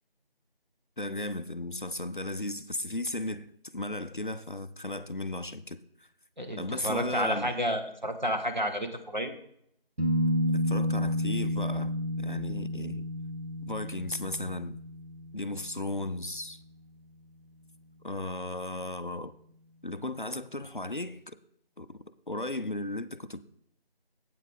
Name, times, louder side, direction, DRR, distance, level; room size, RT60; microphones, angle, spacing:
voice 1, 1.0-6.1 6.6-7.5 10.5-13.1 13.6-14.8 15.3-16.6 18.0-19.3 19.8-21.4 21.8-23.4, left 2 dB, 55° left, 0.5 m, -35 dB
voice 2, 6.4-9.3, equal, 50° right, 1.1 m, -30 dB
sound 1, 10.0-17.6 20.6-20.7, left 1 dB, 80° right, 2.0 m, -32 dB
8.8 x 8.4 x 3.5 m
figure-of-eight pair, 175°, 30 cm